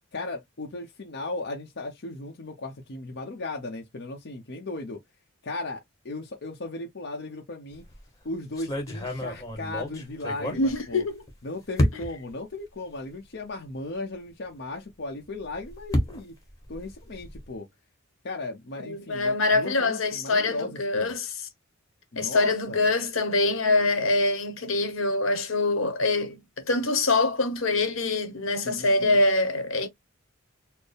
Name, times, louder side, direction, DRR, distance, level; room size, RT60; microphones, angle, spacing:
voice 1, 0.1-5.0 5.4-7.8 8.2-11.0 11.4-16.3 16.7-17.7 18.2-21.1 22.1-22.8 28.5-29.2, left 2 dB, 55° left, 0.7 m, -36 dB
sound 1, 7.7-8.0 8.6-11.3 11.8-12.3 13.1-13.2 13.5-13.6 15.2-17.5, left 1 dB, 15° left, 1.1 m, -30 dB
voice 2, 10.5-11.2 18.8-21.3 22.1-29.9, left 2 dB, 75° left, 1.0 m, -24 dB
4.3 x 2.0 x 3.3 m
head